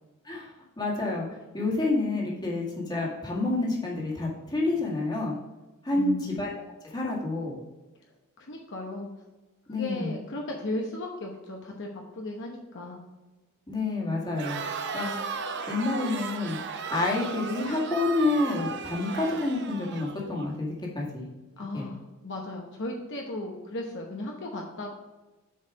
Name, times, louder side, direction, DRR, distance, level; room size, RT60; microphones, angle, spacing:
voice 1, 0.2-1.3 1.5-5.3 5.8-6.5 6.8-7.6 9.7-10.1 13.7-14.6 14.9-15.1 15.7-16.6 16.9-21.3 21.7-21.9, left 2 dB, 20° left, -3 dB, 1.9 m, -28 dB
voice 2, 5.9-6.4 8.4-9.1 9.7-13.0 21.6-24.9, left 2 dB, 55° left, 0 dB, 0.9 m, -36 dB
Crowd, 14.3-20.5, right 5 dB, 55° right, 0.7 m, -35 dB
7.0 x 4.8 x 4.9 m, 1.2 s
head